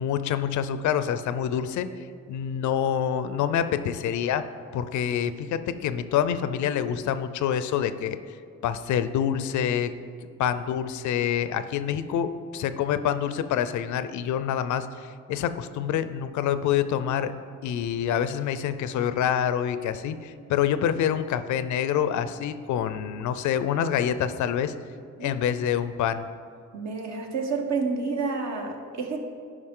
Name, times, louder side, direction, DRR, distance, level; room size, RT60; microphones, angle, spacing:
voice 1, 0.0-1.9 2.3-4.4 4.7-8.2 8.6-9.9 10.4-17.3 17.6-24.7 25.2-26.2, left 9 dB, 70° left, 12 dB, 0.5 m, -26 dB
voice 2, 26.7-29.2, right 4 dB, 65° right, 3 dB, 1.2 m, -29 dB
11.0 x 5.0 x 3.7 m, 2.3 s
cardioid pair, 90°, 30 cm